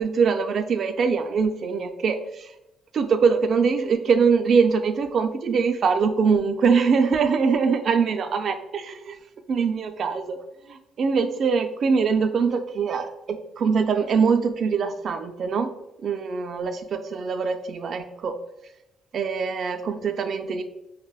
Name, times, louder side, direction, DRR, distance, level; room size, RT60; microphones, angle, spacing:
voice 1, 0.0-2.5 2.9-9.2 9.5-10.4 10.7-15.7 16.0-18.4 19.1-20.6, right 5 dB, 55° right, 7 dB, 0.3 m, -23 dB
4.8 x 2.0 x 2.2 m, 0.89 s
cardioid pair, 90°, 0 cm